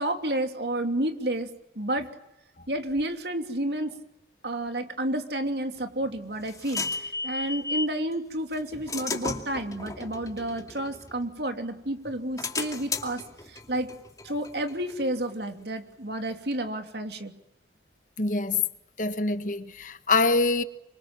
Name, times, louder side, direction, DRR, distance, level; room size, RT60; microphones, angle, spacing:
voice 1, 0.0-1.5 1.7-2.1 2.7-4.0 4.4-13.9 14.2-17.3, right 1 dB, 65° right, 3.0 m, -30 dB
sound 1, 5.8-8.0 8.5-11.6 12.0-15.5, left 3 dB, 20° left, 2.4 m, -35 dB
voice 2, 18.2-18.6 19.0-20.6, left 3 dB, 45° left, 1.4 m, -25 dB
28.5 x 25.0 x 7.4 m
head